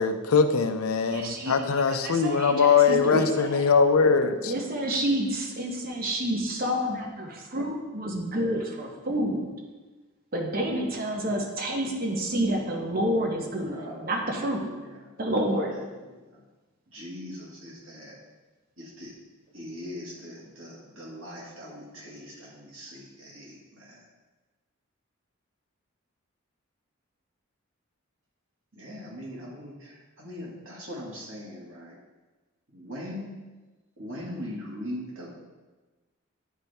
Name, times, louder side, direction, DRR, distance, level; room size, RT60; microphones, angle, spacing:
voice 1, 0.0-4.5, left 5 dB, 85° left, 8 dB, 0.5 m, -22 dB
voice 2, 1.0-1.5 1.9-3.6 4.4-9.5 10.3-14.9 15.2-15.9, right 1 dB, 45° right, 2 dB, 0.9 m, -29 dB
voice 3, 13.7-15.6 16.1-16.4 16.9-18.2 18.8-19.2 19.5-24.0 28.7-32.0 32.7-33.3 34.0-35.3, left 1 dB, 65° right, -5 dB, 1.9 m, -41 dB
10.0 x 3.4 x 4.2 m, 1.2 s
head